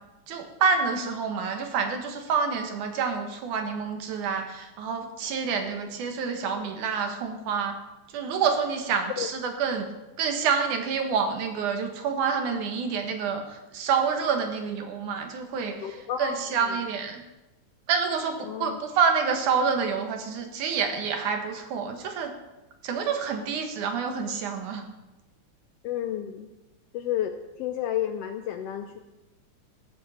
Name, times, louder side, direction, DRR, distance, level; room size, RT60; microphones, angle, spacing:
voice 1, 0.3-7.8 8.1-9.9 10.2-17.2 17.9-22.3 22.8-24.8, right 6 dB, 90° right, 5 dB, 3.0 m, -28 dB
voice 2, 15.8-16.8 18.4-18.8 25.8-26.5 26.9-29.0, left 10 dB, 80° left, 7 dB, 1.4 m, -31 dB
15.0 x 13.0 x 4.3 m, 1.0 s
omnidirectional pair, 3.4 m